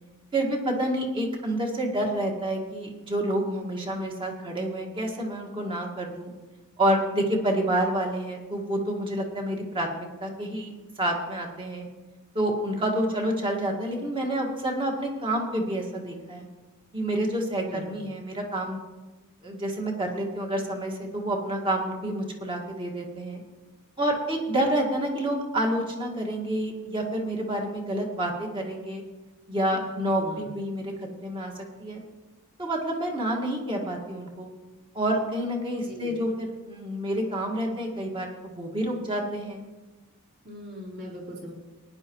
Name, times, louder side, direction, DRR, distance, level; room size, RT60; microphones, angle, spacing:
voice 1, 0.3-6.3 6.8-9.9 10.2-11.9 12.3-16.5 16.9-18.8 19.4-23.4 24.0-29.0 29.5-31.5 31.8-32.0 32.6-34.5 34.9-39.6, right 1 dB, 25° right, 1 dB, 1.8 m, -28 dB
voice 2, 17.6-18.0 29.7-30.4 35.7-36.2 40.4-41.5, equal, 50° right, -5 dB, 4.0 m, -41 dB
18.5 x 10.5 x 3.1 m, 1.2 s
head